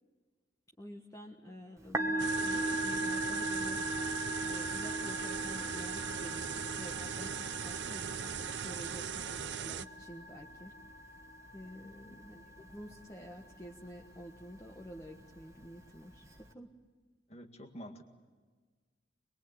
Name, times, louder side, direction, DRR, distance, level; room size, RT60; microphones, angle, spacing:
voice 1, 0.8-10.8 11.5-16.7, equal, 20° left, 0 dB, 1.4 m, -49 dB
Musical instrument, 1.8-16.5, right 1 dB, 15° right, 1.4 m, -39 dB
sound 1, 2.2-9.9, right 8 dB, 70° right, 0.6 m, -39 dB
voice 2, 11.8-12.2 17.3-18.1, equal, 35° left, 5 dB, 2.0 m, -49 dB
23.5 x 22.5 x 8.4 m, 1.4 s
head